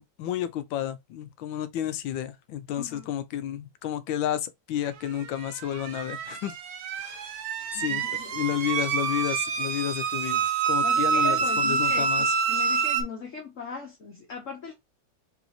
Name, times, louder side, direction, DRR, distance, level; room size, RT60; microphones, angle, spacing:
voice 1, 0.0-6.6 7.0-7.3 7.7-8.0 8.3-12.3, left 11 dB, 85° left, 1.4 m, -31 dB
voice 2, 2.8-3.1 7.6-8.6 10.8-14.7, left 4 dB, 50° left, 1.2 m, -39 dB
sound 1, 5.4-13.0, right 5 dB, 65° right, 1.0 m, -27 dB
3.4 x 3.1 x 3.9 m
omnidirectional pair, 2.1 m